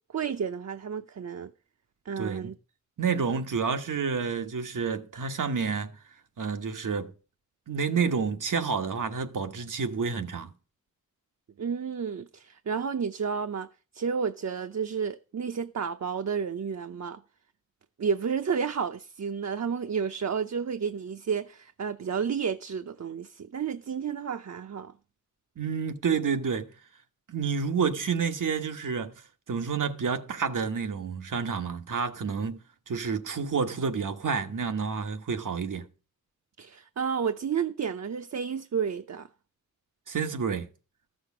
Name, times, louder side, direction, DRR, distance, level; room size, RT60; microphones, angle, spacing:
voice 1, 0.1-1.5 2.1-2.5 11.6-13.7 13.9-17.2 18.0-24.9 36.6-39.3, right 6 dB, 60° right, 0.7 m, -31 dB
voice 2, 2.2-2.5 3.0-5.9 6.4-7.1 7.7-10.5 25.6-26.7 27.3-29.1 29.5-32.6 32.9-35.8 40.1-40.7, right 5 dB, 85° right, 1.2 m, -29 dB
14.0 x 6.4 x 6.0 m
wide cardioid pair, 105°, 31 cm